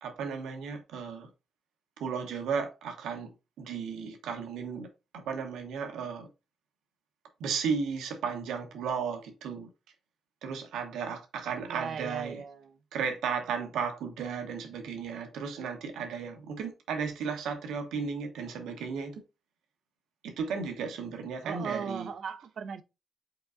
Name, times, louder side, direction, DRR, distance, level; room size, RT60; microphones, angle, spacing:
voice 1, 0.0-1.3 2.0-4.9 5.1-6.3 7.4-9.7 10.4-12.4 12.9-19.2 20.2-22.1, right 6 dB, 80° right, 0.9 m, -34 dB
voice 2, 11.7-12.8 21.4-22.8, right 6 dB, 65° right, 0.5 m, -37 dB
5.6 x 3.8 x 2.5 m
supercardioid pair, 50°, 0 cm